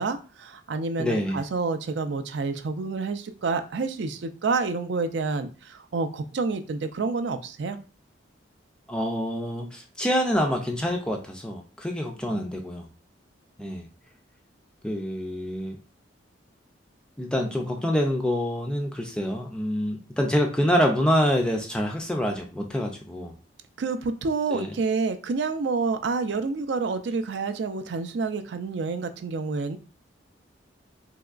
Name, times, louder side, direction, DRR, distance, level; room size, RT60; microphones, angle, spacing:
voice 1, 0.0-7.8 23.8-29.8, right 4 dB, 65° right, 9 dB, 0.4 m, -28 dB
voice 2, 1.0-1.4 8.9-12.9 13.6-13.8 14.8-15.8 17.2-23.3 24.5-24.7, equal, 5° left, 2 dB, 0.3 m, -26 dB
3.5 x 2.9 x 2.4 m, 0.35 s
head